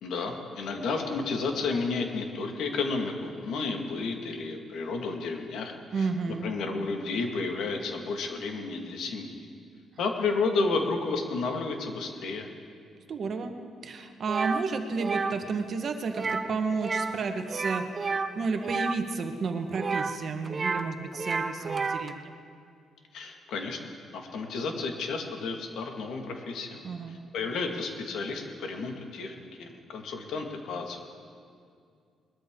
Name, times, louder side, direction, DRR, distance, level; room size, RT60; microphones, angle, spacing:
voice 1, 0.0-9.5 10.0-12.5 23.1-23.8 24.1-31.0, left 4 dB, 75° left, 3 dB, 1.8 m, -32 dB
voice 2, 5.9-6.5 13.1-13.6 13.8-17.8 18.3-22.4 26.8-27.2, right 4 dB, 50° right, 6 dB, 1.3 m, -31 dB
sound 1, 14.3-14.6 15.0-15.3 16.1-16.5 16.8-17.2 17.5-19.0 19.7-20.9 21.1-22.1, right 4 dB, 35° right, 0.7 m, -30 dB
21.0 x 13.5 x 3.8 m, 2.3 s
cardioid pair, 105°, 0 cm